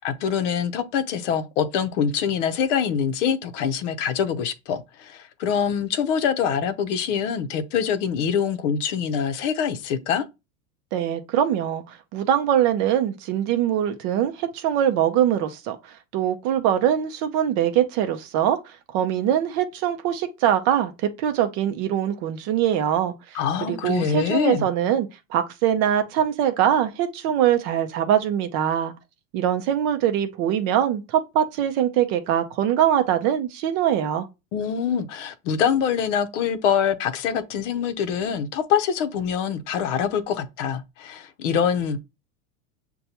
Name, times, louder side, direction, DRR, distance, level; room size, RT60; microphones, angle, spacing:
voice 1, 0.0-10.3 23.3-24.7 34.5-42.0, left 7 dB, 60° left, 0.7 m, -24 dB
voice 2, 10.9-23.4 23.7-28.9 29.3-34.3, right 10 dB, 40° right, 0.5 m, -23 dB
6.5 x 2.3 x 2.8 m
supercardioid pair, 135°, 43 cm